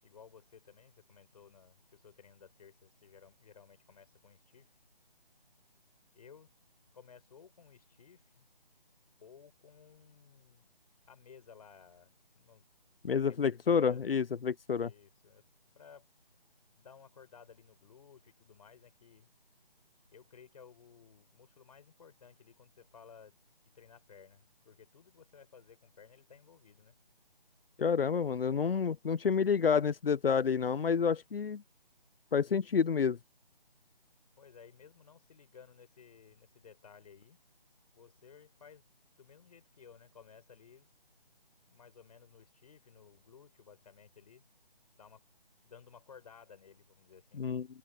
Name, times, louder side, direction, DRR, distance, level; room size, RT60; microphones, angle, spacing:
voice 1, 0.0-4.7 6.1-6.5 6.9-8.5 9.2-10.7 11.1-12.7 13.1-14.0 14.8-15.4 15.8-16.1 16.8-19.3 20.1-23.4 23.7-27.0 34.4-37.4 37.9-38.9 39.2-40.9 41.7-44.5 45.0-45.2 45.6-47.5, left 6 dB, 40° left, 5.4 m, -57 dB
voice 2, 13.0-14.9 27.8-31.6 32.3-33.2 47.4-47.7, left 6 dB, 75° left, 0.7 m, -29 dB
open air
figure-of-eight pair, 160°, 29 cm